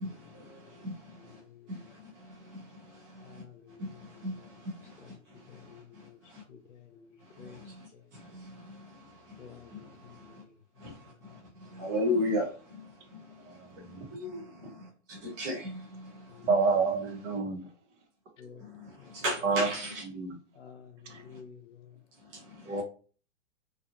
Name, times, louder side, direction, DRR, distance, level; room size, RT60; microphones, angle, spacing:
voice 1, 0.0-1.4 1.7-3.4 3.8-6.4 7.2-10.4 10.8-16.7 17.0-17.4 18.6-20.1 21.1-21.4 22.2-22.8, left 1 dB, 15° right, 0.3 m, -38 dB
voice 2, 1.2-1.9 3.2-4.3 5.0-5.1 5.5-6.2 6.5-7.6 7.9-8.0 9.4-10.5 16.3-16.5 18.4-18.6 19.0-19.1 20.6-21.9, left 7 dB, 70° left, 0.8 m, -52 dB
voice 3, 16.5-17.6 19.4-19.7 20.1-20.3 22.7-22.8, right 4 dB, 70° right, 1.0 m, -27 dB
2.7 x 2.5 x 2.5 m
hypercardioid pair, 150°, 38 cm